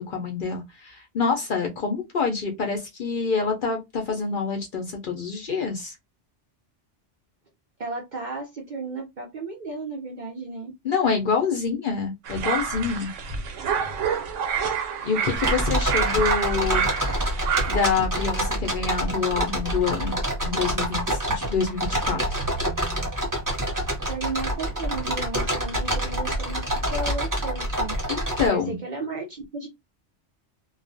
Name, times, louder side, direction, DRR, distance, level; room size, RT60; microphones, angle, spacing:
voice 1, 0.0-5.9 10.8-13.1 15.0-16.8 17.2-20.2 20.4-22.5 28.1-28.8, left 5 dB, 55° left, 0.6 m, -26 dB
voice 2, 7.8-10.7 24.0-27.9 28.5-29.7, right 3 dB, 55° right, 0.5 m, -34 dB
sound 1, 12.3-17.9, right 7 dB, 85° right, 0.9 m, -28 dB
sound 2, 15.3-28.5, equal, 20° right, 0.7 m, -27 dB
2.3 x 2.1 x 2.5 m
omnidirectional pair, 1.2 m